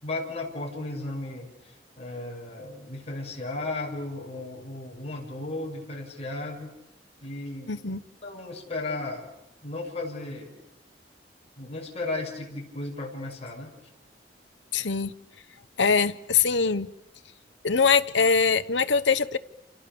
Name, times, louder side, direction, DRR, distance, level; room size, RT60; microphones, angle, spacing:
voice 1, 0.0-6.7 7.2-7.7 8.2-9.3 9.6-10.5 11.6-13.7, left 2 dB, 35° left, 0 dB, 6.2 m, -35 dB
voice 2, 7.7-8.0 14.7-15.1 15.8-16.9 17.6-19.4, left 5 dB, 85° left, 13 dB, 1.1 m, -22 dB
29.0 x 28.0 x 7.0 m, 0.91 s
head